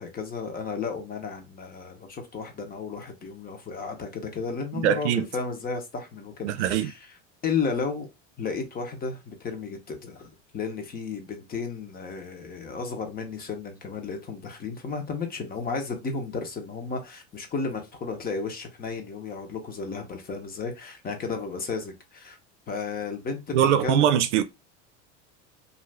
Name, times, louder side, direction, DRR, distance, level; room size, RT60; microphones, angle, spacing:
voice 1, 0.0-7.0 7.4-8.1 8.4-22.4 22.7-24.2, left 4 dB, 25° left, 0.9 m, -33 dB
voice 2, 4.7-5.3 6.4-6.9 23.5-24.4, right 10 dB, 90° right, 0.5 m, -22 dB
2.6 x 2.4 x 3.3 m
supercardioid pair, 115°, 34 cm